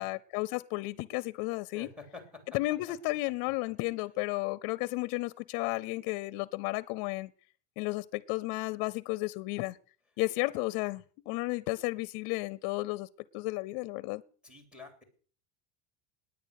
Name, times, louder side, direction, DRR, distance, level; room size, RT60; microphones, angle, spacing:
voice 1, 0.0-1.9 2.5-7.3 7.8-9.8 10.2-13.1 13.3-14.2, left 21 dB, 55° left, 0.6 m, -33 dB
voice 2, 1.7-2.6 2.9-3.0 14.4-15.0, left 4 dB, ahead, 3.2 m, -48 dB
19.0 x 9.6 x 6.5 m
cardioid pair, 175°, 44 cm